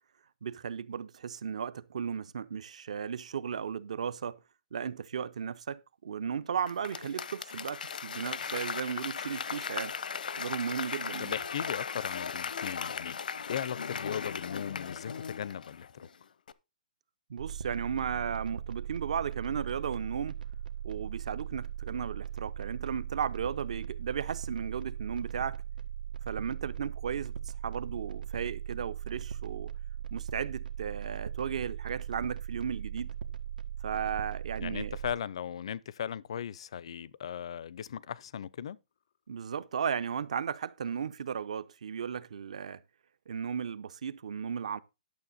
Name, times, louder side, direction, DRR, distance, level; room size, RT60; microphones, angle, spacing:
voice 1, 0.4-4.4 4.7-9.9 10.4-11.4 17.3-20.4 20.8-25.6 26.3-29.7 30.1-33.1 33.8-35.0 39.3-42.8 43.3-44.8, right 7 dB, 50° right, 0.7 m, -35 dB
Applause / Crowd, 6.7-16.1 16.5-16.6, left 6 dB, 80° left, 0.8 m, -37 dB
voice 2, 11.2-16.1 34.6-38.8, left 9 dB, 40° left, 0.5 m, -38 dB
sound 1, 17.4-35.1, right 9 dB, 85° right, 1.5 m, -39 dB
11.5 x 6.9 x 4.1 m
hypercardioid pair, 180°, 4 cm